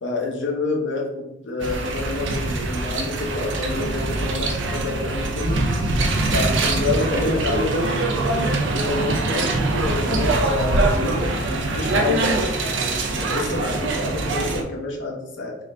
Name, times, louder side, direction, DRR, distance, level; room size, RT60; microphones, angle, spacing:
voice 1, 0.0-5.7 6.3-7.9 8.4-11.4 11.8-12.6 13.1-15.6, left 2 dB, 75° left, 0 dB, 0.8 m, -27 dB
sound 1, 1.6-14.6, right 2 dB, 75° right, 0.5 m, -23 dB
3.7 x 2.4 x 3.3 m, 0.90 s
head